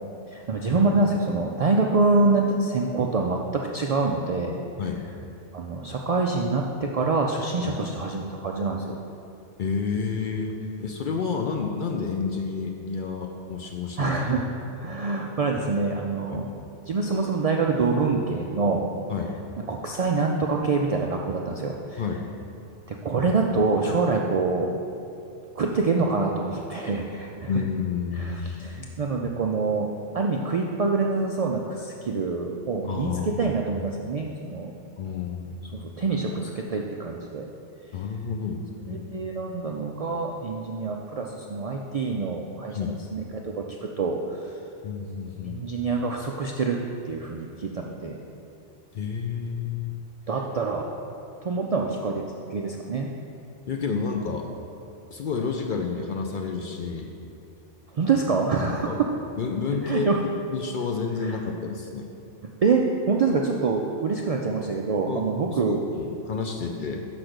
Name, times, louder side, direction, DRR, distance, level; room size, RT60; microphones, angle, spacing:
voice 1, 0.3-4.6 5.5-9.0 14.0-14.5 14.8-16.5 16.9-18.9 19.7-22.0 22.9-24.7 25.6-27.5 28.1-29.9 30.1-34.7 35.7-37.5 38.9-44.5 45.4-46.8 47.0-48.2 50.3-50.9 51.4-53.1 57.9-59.1 59.8-60.2 61.2-61.4 62.6-65.8, right 3 dB, 75° right, 0 dB, 0.3 m, -26 dB
voice 2, 9.6-14.2 16.3-16.4 19.1-19.4 22.0-22.3 27.5-28.7 32.8-33.5 35.0-35.6 37.9-39.1 42.7-43.0 44.8-45.6 48.9-50.0 53.7-54.5 55.1-57.1 58.8-59.0 59.4-60.1 60.5-62.1 65.1-65.3 65.7-67.1, left 5 dB, 60° left, 2 dB, 0.6 m, -30 dB
6.1 x 5.8 x 5.0 m, 2.7 s
omnidirectional pair, 1.2 m